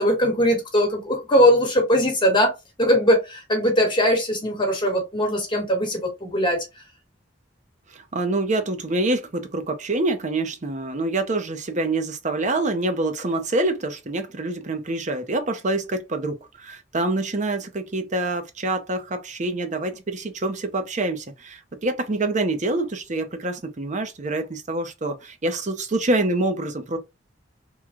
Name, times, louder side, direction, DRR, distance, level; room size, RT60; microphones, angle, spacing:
voice 1, 0.0-2.5 2.8-6.6, equal, 25° left, 1.3 m, -20 dB
voice 2, 7.9-27.0, right 2 dB, 40° right, 0.7 m, -26 dB
3.1 x 2.2 x 3.7 m
head